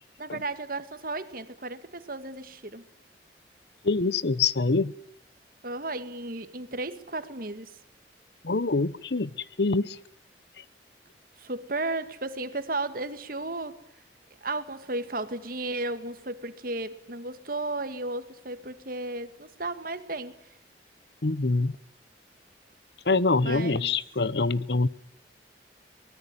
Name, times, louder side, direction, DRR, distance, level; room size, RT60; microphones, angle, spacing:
voice 1, 0.2-2.9 5.6-7.7 11.4-13.8 14.4-20.4 23.4-23.9, right 2 dB, 55° right, 2.0 m, -34 dB
voice 2, 3.8-4.9 8.4-9.3 9.6-10.0 21.2-21.7 23.1-24.9, left 3 dB, 70° left, 1.0 m, -25 dB
23.5 x 20.0 x 9.9 m
head